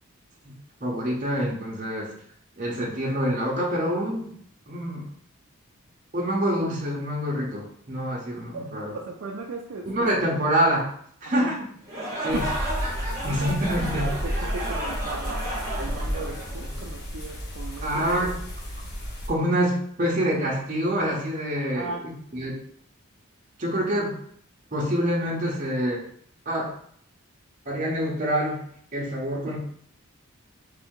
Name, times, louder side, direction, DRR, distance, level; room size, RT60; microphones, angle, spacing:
voice 1, 0.8-2.1 2.6-4.3 4.7-5.0 6.1-8.9 9.9-10.9 11.2-11.6 12.2-12.4 13.2-14.1 17.8-18.3 19.3-22.6 23.6-24.2 24.7-26.0 26.5-26.7 27.7-28.6 28.9-29.6, equal, 35° right, -5 dB, 0.8 m, -26 dB
voice 2, 8.5-9.9 11.4-11.5 12.1-12.6 13.0-13.8 14.1-18.1 21.6-22.1 29.5-29.6, right 3 dB, 60° right, 0 dB, 0.4 m, -37 dB
sound 1, 11.8-17.0, right 1 dB, 15° right, 1.1 m, -33 dB
sound 2, 12.3-19.3, equal, 45° left, 0.7 m, -32 dB
3.3 x 2.7 x 3.7 m, 0.62 s
head